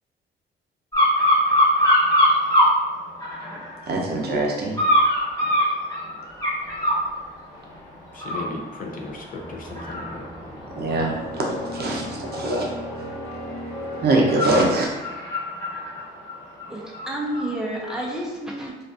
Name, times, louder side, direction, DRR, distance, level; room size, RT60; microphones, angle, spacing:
sound 1, 0.9-2.7 3.2-3.8 4.7-7.0 7.5-7.8 8.1-17.5 17.9-18.0, left 1 dB, 20° left, 1.2 m, -23 dB
voice 1, 3.9-4.8 10.8-12.7 14.0-14.9, right 2 dB, 55° right, -1 dB, 0.6 m, -23 dB
voice 2, 8.1-10.3, left 3 dB, 45° left, 1 dB, 0.5 m, -36 dB
sound 2, 9.3-14.7, left 1 dB, 20° right, 1.0 m, -36 dB
voice 3, 16.7-18.8, right 1 dB, 5° right, -3 dB, 0.6 m, -30 dB
2.5 x 2.4 x 2.4 m, 1.2 s
cardioid pair, 90°, 20 cm